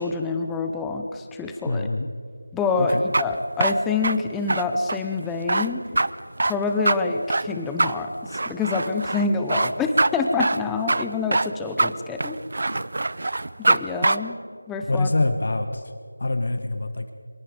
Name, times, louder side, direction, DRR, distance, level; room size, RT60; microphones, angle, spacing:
voice 1, 0.0-1.9 2.5-5.8 6.4-12.4 13.6-14.4 14.7-15.1, left 4 dB, 5° left, 4 dB, 0.7 m, -26 dB
voice 2, 1.7-2.1 2.8-3.0 14.9-15.9 16.2-17.1, left 2 dB, 45° left, 7 dB, 1.4 m, -25 dB
sound 1, 2.9-13.8 14.0-14.2, right 2 dB, 45° right, 0.6 m, -23 dB
25.5 x 22.5 x 5.2 m, 2.1 s
figure-of-eight pair, 175°, 0 cm